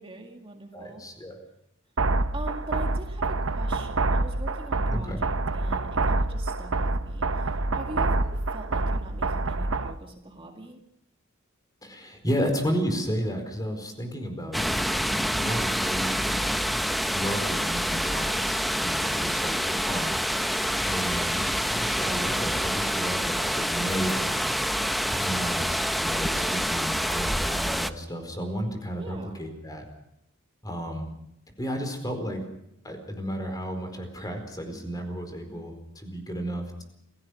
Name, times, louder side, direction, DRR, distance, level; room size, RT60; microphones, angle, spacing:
voice 1, 0.0-1.1 2.3-10.8 26.1-26.6 29.0-29.4, right 2 dB, 25° right, 3 dB, 2.0 m, -42 dB
voice 2, 0.7-1.4 4.9-5.2 11.8-16.5 17.1-20.1 20.9-24.5 25.1-29.9 30.6-31.1 31.6-32.4 32.8-36.8, equal, 20° left, 6 dB, 4.6 m, -33 dB
sound 1, 2.0-10.0, right 2 dB, 75° right, 1.0 m, -27 dB
sound 2, 14.5-27.9, equal, ahead, 0.8 m, -27 dB
28.5 x 17.0 x 6.4 m, 0.78 s
head